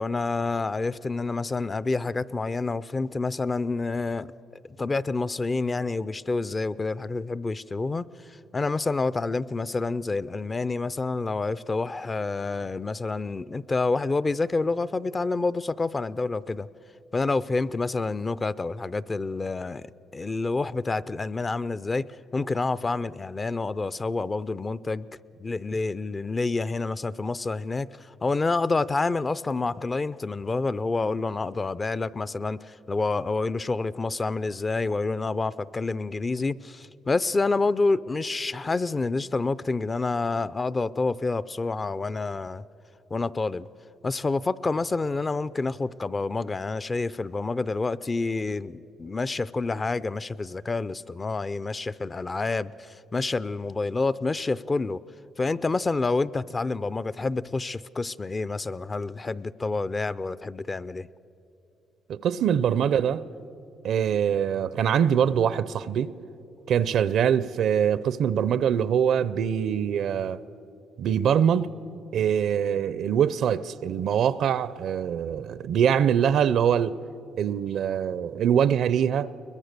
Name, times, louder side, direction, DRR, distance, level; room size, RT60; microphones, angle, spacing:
voice 1, 0.0-16.7 17.1-19.9 20.1-22.1 22.3-25.1 25.4-42.6 43.1-43.7 44.0-55.0 55.4-61.1, left 3 dB, 25° left, 0.4 m, -28 dB
voice 2, 62.1-63.2 63.8-66.1 66.7-70.4 71.0-71.7 72.1-76.9 77.4-79.3, right 8 dB, 70° right, 0.6 m, -23 dB
22.0 x 21.0 x 6.7 m
cardioid pair, 90°, 0 cm